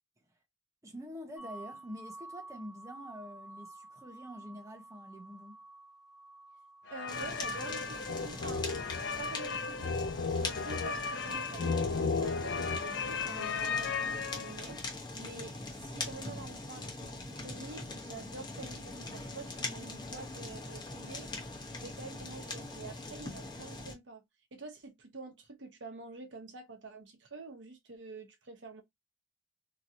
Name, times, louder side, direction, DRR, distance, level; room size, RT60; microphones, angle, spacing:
voice 1, 0.8-5.6, equal, 15° right, 0.8 m, -46 dB
sound 1, 1.4-13.1, right 2 dB, ahead, 0.3 m, -53 dB
sound 2, 6.9-14.7, left 4 dB, 65° left, 0.4 m, -34 dB
voice 2, 6.9-8.7 9.2-10.0 10.3-11.8 12.2-14.8 15.1-21.3 21.7-24.2 24.5-28.8, right 3 dB, 75° right, 0.9 m, -47 dB
Fire, 7.1-23.9, left 2 dB, 25° left, 1.0 m, -42 dB
2.9 x 2.8 x 2.5 m
head